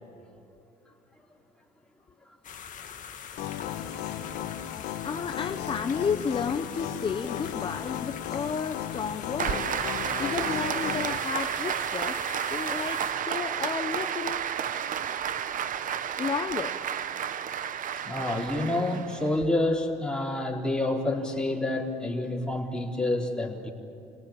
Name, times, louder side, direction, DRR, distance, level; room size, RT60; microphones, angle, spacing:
sound 1, 2.4-13.1, left 8 dB, 50° left, 1.7 m, -43 dB
sound 2, 3.4-11.2, left 10 dB, 80° left, 1.3 m, -36 dB
voice 1, 5.0-9.7 10.2-12.2 12.5-14.4 16.2-16.8, left 6 dB, 30° left, 7 dB, 0.9 m, -32 dB
Applause, 9.4-19.5, right 9 dB, 50° right, 0.9 m, -31 dB
voice 2, 18.0-23.7, left 1 dB, 5° left, -2 dB, 4.0 m, -28 dB
27.5 x 19.0 x 8.9 m, 2.9 s
cardioid pair, 110°, 17 cm